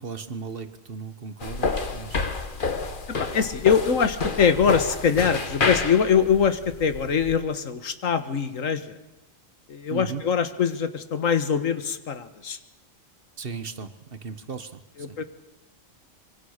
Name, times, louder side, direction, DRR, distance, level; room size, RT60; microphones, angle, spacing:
voice 1, 0.0-2.3 9.9-10.2 13.4-15.2, right 5 dB, 45° right, 11 dB, 1.4 m, -36 dB
sound 1, 1.4-7.4, left 4 dB, 40° left, 1.5 m, -29 dB
voice 2, 3.2-9.0 9.7-12.6 15.0-15.2, left 7 dB, 80° left, 11 dB, 1.8 m, -23 dB
25.5 x 23.5 x 6.6 m, 1.0 s
omnidirectional pair, 1.3 m